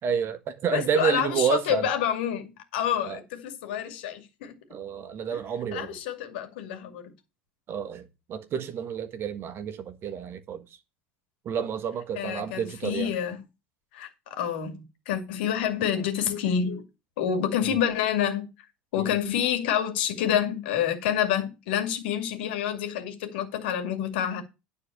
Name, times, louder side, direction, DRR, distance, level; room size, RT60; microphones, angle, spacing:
voice 1, 0.0-1.9 3.0-3.2 4.7-6.0 7.7-10.6 11.4-13.1 17.6-17.8 19.0-19.1, right 7 dB, 45° right, 1.5 m, -30 dB
voice 2, 0.7-4.6 5.3-5.4 5.7-7.1 12.1-13.4 13.9-16.8 17.2-18.5 18.9-24.4, left 9 dB, 75° left, 2.2 m, -28 dB
9.9 x 4.3 x 7.2 m
hypercardioid pair, 80°, 6 cm